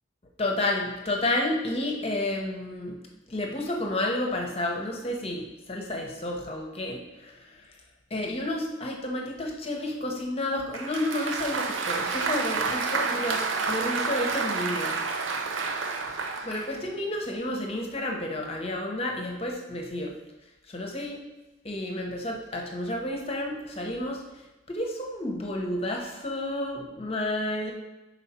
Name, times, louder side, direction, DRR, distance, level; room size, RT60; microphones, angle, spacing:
voice 1, 0.4-3.0 3.3-7.3 8.1-13.4 13.7-15.0 16.4-20.1 20.7-21.2 21.6-24.2 24.7-27.7, left 1 dB, 30° left, 1 dB, 0.9 m, -31 dB
Applause, 10.7-16.7, right 4 dB, 70° right, 0.6 m, -29 dB
5.6 x 4.4 x 4.3 m, 1.0 s
head